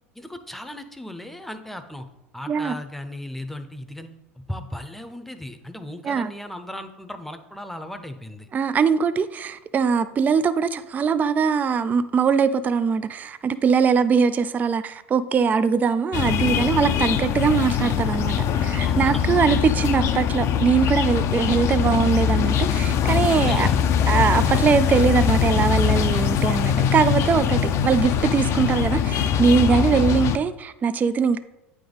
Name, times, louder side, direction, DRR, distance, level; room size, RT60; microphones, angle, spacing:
voice 1, 0.2-2.1 2.3-4.1 4.3-8.5 18.8-19.2 19.5-20.1 23.5-23.8 29.7-29.9, left 1 dB, 5° left, 0.7 m, -36 dB
voice 2, 8.5-23.7 24.1-31.4, right 6 dB, 25° right, 0.3 m, -21 dB
sound 1, 16.1-30.4, left 8 dB, 45° left, 0.5 m, -22 dB
9.0 x 3.5 x 4.0 m
hypercardioid pair, 85°, 7 cm